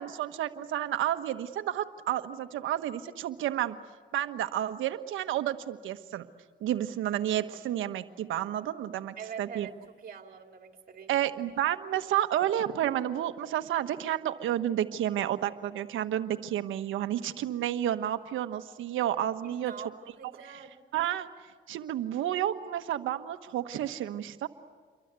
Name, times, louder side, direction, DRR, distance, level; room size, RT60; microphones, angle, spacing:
voice 1, 0.0-3.8 4.1-6.3 6.6-9.7 11.1-19.7 20.9-21.3 21.7-24.5, right 11 dB, 80° right, 9 dB, 1.3 m, -31 dB
voice 2, 9.2-11.3 19.4-20.7, right 7 dB, 50° right, 4 dB, 2.9 m, -44 dB
28.5 x 23.5 x 8.2 m, 1.5 s
cardioid pair, 90°, 20 cm